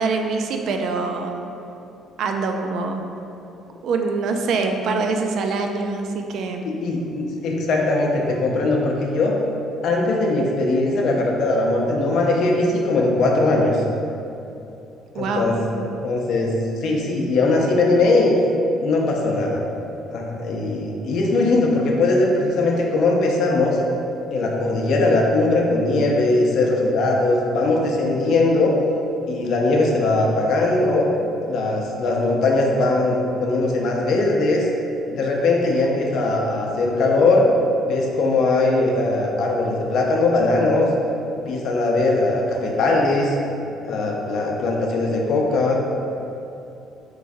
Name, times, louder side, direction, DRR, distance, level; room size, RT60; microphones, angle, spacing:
voice 1, 0.0-1.4 2.2-3.0 3.8-6.6 15.1-15.6, right 4 dB, 65° right, 4 dB, 0.3 m, -24 dB
voice 2, 6.6-9.4 9.8-13.8 15.1-15.5 15.8-16.5 16.8-18.3 18.8-19.6 20.1-23.8 24.3-28.7 29.3-31.1 31.5-34.7 35.1-37.5 37.8-40.9 41.5-43.3 43.8-45.8, left 2 dB, 65° left, -1 dB, 0.5 m, -20 dB
3.0 x 2.6 x 3.5 m, 2.7 s
cardioid pair, 110°, 0 cm